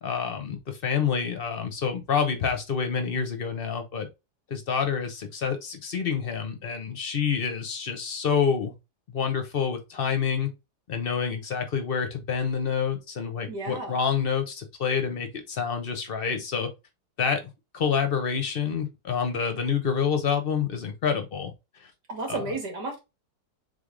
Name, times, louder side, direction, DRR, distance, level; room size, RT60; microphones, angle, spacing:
voice 1, 0.0-4.1 4.5-8.7 9.1-10.5 10.9-16.7 17.2-17.4 17.7-21.5 21.8-21.9 22.3-22.4, left 6 dB, 45° left, 0.8 m, -27 dB
voice 2, 13.5-14.0 22.1-23.0, right 2 dB, 90° right, 2.3 m, -32 dB
3.9 x 3.4 x 3.7 m
omnidirectional pair, 1.7 m